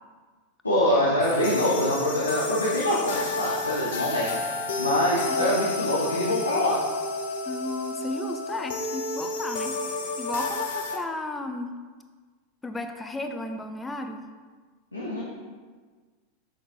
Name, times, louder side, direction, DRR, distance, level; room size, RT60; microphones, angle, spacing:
voice 1, 0.6-4.4 4.8-6.8 14.9-15.3, left 1 dB, 85° left, -5 dB, 0.9 m, -25 dB
sound 1, 1.2-11.0, left 2 dB, 60° left, 0.8 m, -30 dB
voice 2, 7.5-9.8 10.2-11.7 12.6-14.3, left 2 dB, 15° left, 6 dB, 0.6 m, -34 dB
6.2 x 5.9 x 3.0 m, 1.4 s
figure-of-eight pair, 85°, 0 cm